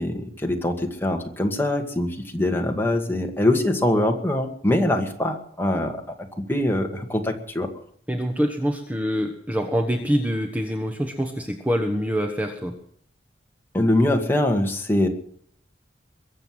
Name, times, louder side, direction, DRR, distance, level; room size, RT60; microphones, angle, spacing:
voice 1, 0.0-7.7 13.7-15.1, left 1 dB, 10° left, 2 dB, 2.0 m, -23 dB
voice 2, 8.1-12.8, equal, 10° right, 3 dB, 1.2 m, -25 dB
22.5 x 8.0 x 7.9 m, 0.63 s
head